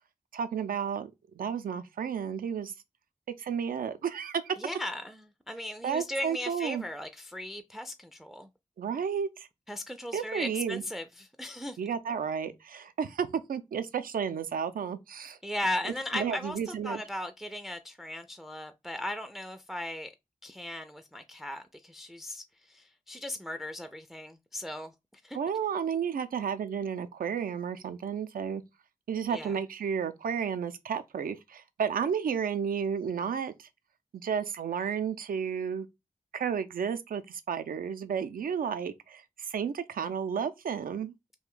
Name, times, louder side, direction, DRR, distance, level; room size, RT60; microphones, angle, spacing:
voice 1, 0.3-1.1 1.4-2.7 3.4-4.6 5.8-6.8 8.8-9.5 10.1-10.8 11.8-15.4 16.1-17.0 25.3-28.6 29.1-33.7 34.1-35.9 36.3-41.1, right 7 dB, 85° right, 0.4 m, -32 dB
voice 2, 4.6-8.5 9.7-11.8 15.4-16.6 16.8-20.1 20.4-24.9 25.2-25.4 29.3-29.5, left 1 dB, ahead, 0.4 m, -37 dB
2.5 x 2.1 x 3.6 m
cardioid pair, 45°, 14 cm